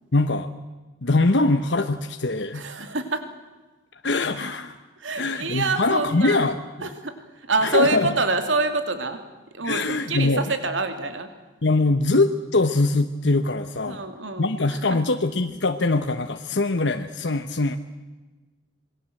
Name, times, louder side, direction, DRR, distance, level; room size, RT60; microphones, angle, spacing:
voice 1, 0.1-0.5 1.0-2.6 4.0-4.8 5.1-6.9 7.6-8.1 9.6-10.4 11.6-14.0 14.4-17.8, left 2 dB, 70° left, 7 dB, 1.1 m, -22 dB
voice 2, 2.5-3.2 5.0-6.5 6.8-9.2 9.5-11.3 13.9-15.0, right 3 dB, 80° right, 7 dB, 2.6 m, -26 dB
27.0 x 21.5 x 7.8 m, 1.3 s
head